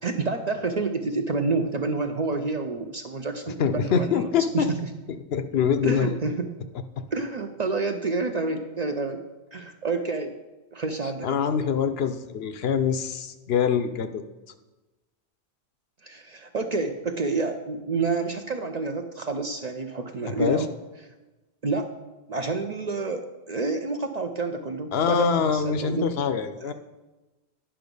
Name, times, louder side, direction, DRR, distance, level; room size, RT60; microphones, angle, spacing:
voice 1, 0.0-4.8 5.8-6.5 7.1-9.2 9.5-10.3 10.7-11.4 16.0-20.7 21.6-21.9 22.3-26.1 26.6-26.7, right 3 dB, 45° right, 6 dB, 0.6 m, -29 dB
voice 2, 3.6-4.7 5.3-6.2 11.2-14.2 20.3-20.6 24.9-26.7, left 6 dB, 65° left, 10 dB, 0.8 m, -24 dB
10.0 x 5.8 x 5.3 m, 1.1 s
omnidirectional pair, 1.2 m